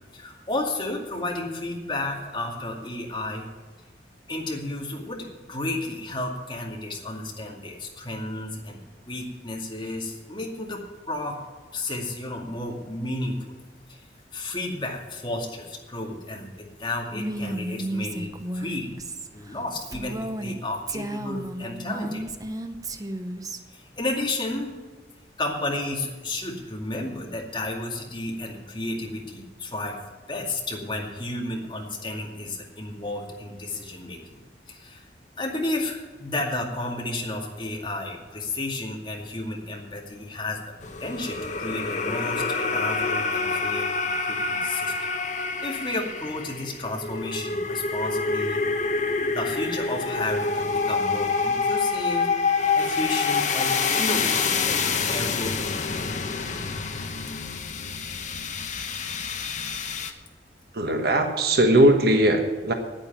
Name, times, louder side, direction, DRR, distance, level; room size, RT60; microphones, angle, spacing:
voice 1, 0.1-3.4 4.3-10.8 11.1-11.4 11.7-13.6 13.9-14.0 14.3-18.9 19.3-22.2 23.7-24.7 25.4-30.0 30.3-34.4 34.7-35.1 35.4-45.1 45.6-48.6 49.3-52.3 52.8-54.8 55.1-56.1 56.4-56.5, left 2 dB, 25° left, 0 dB, 2.3 m, -32 dB
Female speech woman speaking, 17.1-20.6 20.9-23.6, right 1 dB, 20° right, 0.7 m, -33 dB
sound 1, 40.8-60.1, left 4 dB, 45° left, 1.0 m, -27 dB
voice 2, 60.7-62.7, right 1 dB, 60° right, 5 dB, 1.3 m, -19 dB
9.5 x 9.0 x 9.1 m, 1.3 s
head